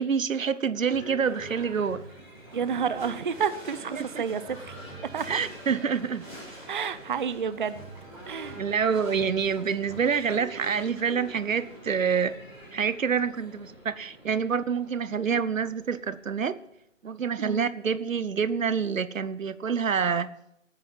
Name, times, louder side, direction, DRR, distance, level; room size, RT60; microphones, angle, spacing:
voice 1, 0.0-2.0 4.0-4.2 5.3-6.2 8.6-12.4 12.7-16.6 17.0-20.3, right 6 dB, 85° right, 17 dB, 1.0 m, -27 dB
Livestock farm animals working animals / Bell, 0.8-16.6, right 1 dB, 5° right, 6.0 m, -45 dB
voice 2, 2.5-4.7 5.1-5.4 6.7-7.9 8.3-8.6 17.4-17.7, right 7 dB, 40° right, 14 dB, 0.6 m, -30 dB
17.5 x 10.0 x 5.5 m, 0.78 s
hypercardioid pair, 160°, 39 cm